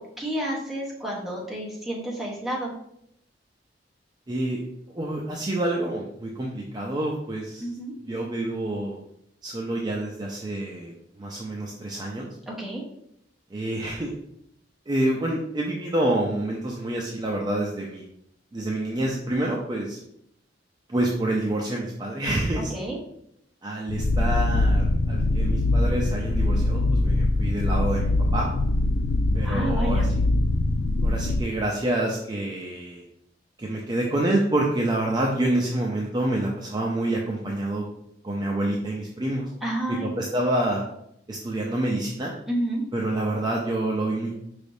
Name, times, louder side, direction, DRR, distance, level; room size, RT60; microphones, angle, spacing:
voice 1, 0.0-2.7 7.6-7.9 12.5-12.8 22.7-23.0 29.4-30.1 39.6-40.1 42.5-42.8, right 1 dB, ahead, -4 dB, 0.9 m, -30 dB
voice 2, 4.3-4.7 4.9-7.7 8.1-9.0 9.4-10.9 11.2-12.4 13.5-14.1 14.9-18.1 18.5-20.0 20.9-22.7 23.6-28.5 29.3-30.1 31.0-33.0 33.6-37.8 38.2-39.5 39.9-40.8 41.3-42.3 42.9-44.4, right 1 dB, 25° right, -2 dB, 0.4 m, -27 dB
sound 1, 23.9-31.4, left 2 dB, 80° left, 0.4 m, -23 dB
4.9 x 3.3 x 2.6 m, 0.75 s
head